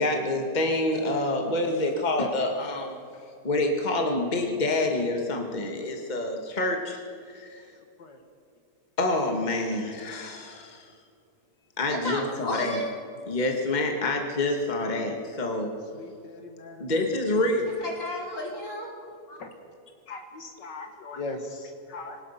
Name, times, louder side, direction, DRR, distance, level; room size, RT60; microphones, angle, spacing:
voice 1, 0.0-3.0 3.4-7.0 7.3-7.6 9.0-10.9 11.8-12.8 13.3-15.7 16.8-17.8, left 2 dB, 25° left, 2 dB, 1.8 m, -27 dB
voice 2, 11.9-12.9 17.8-18.9 19.3-19.4, left 1 dB, 45° left, -2 dB, 4.5 m, -33 dB
voice 3, 15.9-16.9 19.3-19.5 20.1-22.2, left 3 dB, 85° left, 4 dB, 2.3 m, -39 dB
25.0 x 18.5 x 5.8 m, 2.4 s
omnidirectional pair, 1.8 m